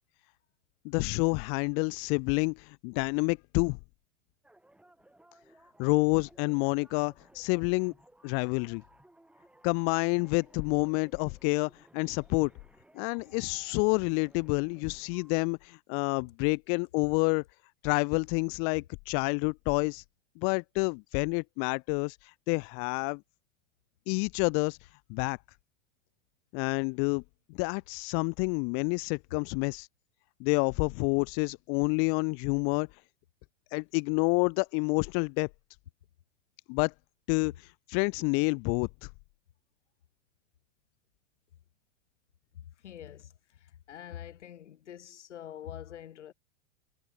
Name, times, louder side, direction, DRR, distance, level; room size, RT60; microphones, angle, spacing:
voice 1, 0.8-3.8 5.8-7.9 8.2-8.8 9.6-12.5 12.9-17.4 17.8-20.0 20.4-22.2 22.5-23.2 24.1-24.8 25.1-25.4 26.5-27.2 27.6-29.9 30.4-32.9 33.7-35.5 36.7-36.9 37.3-38.9, left 40 dB or more, 40° left, 0.6 m, -28 dB
sound 1, 4.4-15.4, right 1 dB, 5° right, 2.7 m, -61 dB
voice 2, 42.5-43.3 43.9-46.3, left 10 dB, 90° left, 3.5 m, -45 dB
hypercardioid pair, 130°, 34 cm